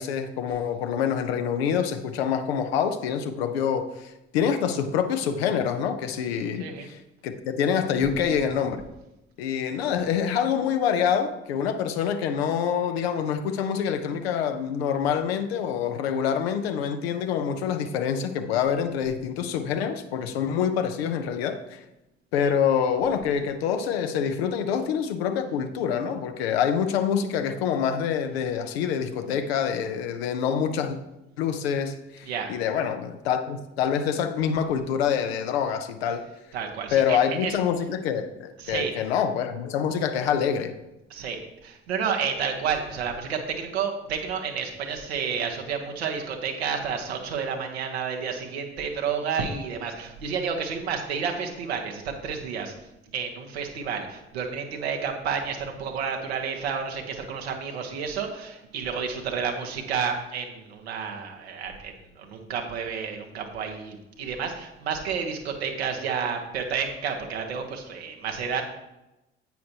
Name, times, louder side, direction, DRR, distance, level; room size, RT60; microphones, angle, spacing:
voice 1, 0.0-7.0 7.2-8.8 9.4-21.8 22.3-31.0 31.4-36.2 36.9-40.7, left 7 dB, 75° left, 8 dB, 0.8 m, -26 dB
voice 2, 36.5-37.6 38.6-38.9 41.1-52.7 53.1-68.6, right 6 dB, 80° right, 2 dB, 1.2 m, -30 dB
10.0 x 8.6 x 2.9 m, 0.94 s
figure-of-eight pair, 45°, 31 cm